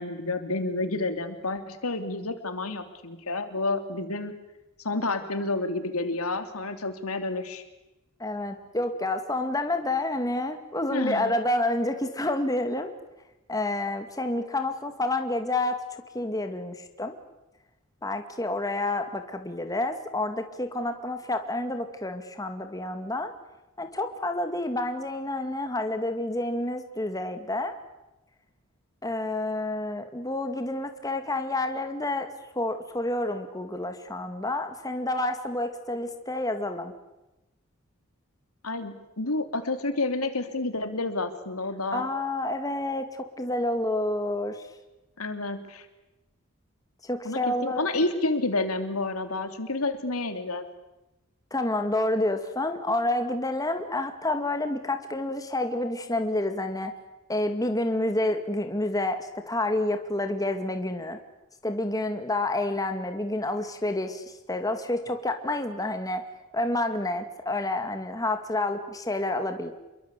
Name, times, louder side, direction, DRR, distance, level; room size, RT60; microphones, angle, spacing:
voice 1, 0.0-4.3 4.8-7.6 10.9-11.3 38.6-42.0 45.2-45.9 47.2-50.7, left 2 dB, 85° left, 8 dB, 3.1 m, -29 dB
voice 2, 8.2-12.9 13.5-17.2 18.0-23.3 23.8-27.7 29.0-32.3 32.6-36.9 41.9-44.6 47.0-47.9 51.5-56.9 57.3-61.2 61.6-66.2 66.5-69.7, left 2 dB, 15° left, 6 dB, 2.2 m, -29 dB
28.0 x 23.0 x 8.4 m, 0.98 s
head